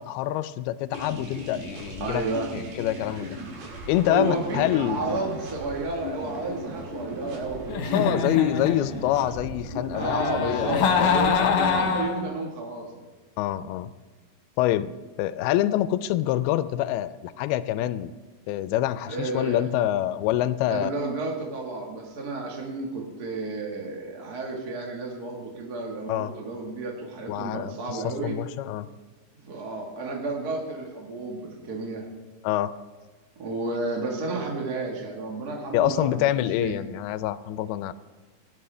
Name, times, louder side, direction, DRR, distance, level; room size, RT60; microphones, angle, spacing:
voice 1, 0.0-2.2 2.5-3.4 3.9-5.2 7.9-11.5 13.4-13.9 14.6-14.9 15.2-18.1 18.5-20.9 26.1-26.3 27.3-28.9 32.4-32.7 35.7-37.9, left 13 dB, 85° left, 15 dB, 2.5 m, -26 dB
sound 1, 0.9-12.0, equal, 85° right, 4.5 m, -37 dB
voice 2, 2.0-2.5 4.1-8.4 9.9-12.9 19.1-19.6 20.7-28.4 29.3-32.0 33.4-36.7, right 3 dB, 45° right, 0 dB, 1.2 m, -32 dB
Giggle, 7.7-9.2 9.9-12.3, left 6 dB, 65° left, 2.6 m, -25 dB
17.5 x 11.0 x 3.4 m, 1.3 s
omnidirectional pair, 4.4 m